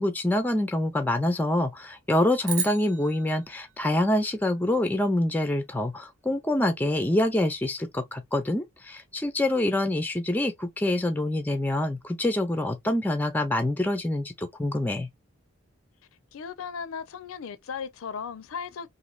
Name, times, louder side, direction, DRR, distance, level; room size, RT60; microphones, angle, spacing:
voice 1, 0.0-15.1, left 1 dB, 10° left, 0.3 m, -26 dB
sound 1, 2.5-4.9, right 7 dB, 60° right, 0.8 m, -36 dB
voice 2, 16.3-18.9, left 6 dB, 85° left, 0.4 m, -36 dB
3.1 x 2.5 x 2.3 m
head